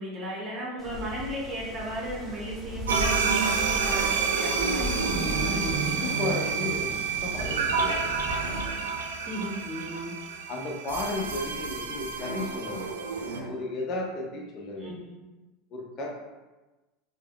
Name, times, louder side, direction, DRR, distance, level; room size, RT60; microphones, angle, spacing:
voice 1, 0.0-6.2 9.3-10.2 14.8-15.1, equal, 40° right, -3 dB, 0.8 m, -36 dB
Wind, 0.8-8.7, left 1 dB, ahead, 0.8 m, -38 dB
sound 1, 2.9-13.4, right 5 dB, 75° right, 0.3 m, -29 dB
voice 2, 5.8-8.1 10.5-13.1 13.4-14.9 15.7-16.1, left 2 dB, 40° left, -1 dB, 0.7 m, -34 dB
sound 2, 7.4-7.9 8.3-8.9 12.2-12.8 13.1-13.8, right 2 dB, 75° left, 0.9 m, -41 dB
3.4 x 2.2 x 2.2 m, 1.1 s
figure-of-eight pair, 80°, 0 cm